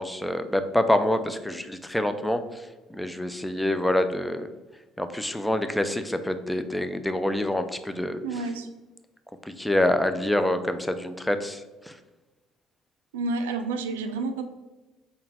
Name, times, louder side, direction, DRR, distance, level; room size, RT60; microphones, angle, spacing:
voice 1, 0.0-4.5 5.0-8.2 9.4-12.0, left 1 dB, 5° left, 9 dB, 0.4 m, -26 dB
voice 2, 8.2-8.7 13.1-14.4, right 3 dB, 85° right, 7 dB, 0.3 m, -29 dB
3.8 x 2.2 x 4.2 m, 1.1 s
hypercardioid pair, 60°, 0 cm